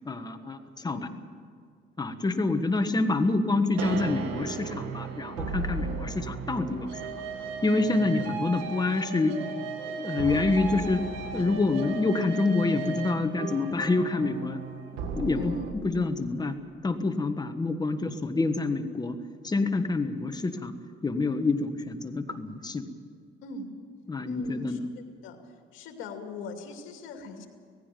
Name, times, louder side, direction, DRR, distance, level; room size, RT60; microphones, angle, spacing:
voice 1, 0.0-1.1 2.0-7.2 7.6-9.3 9.9-14.6 15.2-15.5 15.8-16.6 16.8-19.2 19.4-20.8 21.0-22.9 24.1-24.9, left 3 dB, 20° left, 8 dB, 1.4 m, -27 dB
voice 2, 0.8-1.1 2.8-2.9 5.8-6.0 15.3-15.6 23.4-23.7 24.3-24.8 25.2-25.4 25.7-27.5, left 3 dB, 80° left, 4 dB, 2.6 m, -40 dB
sound 1, 3.8-15.7, right 5 dB, 90° right, 1.9 m, -35 dB
18.0 x 16.0 x 9.1 m, 2.1 s
cardioid pair, 105°, 20 cm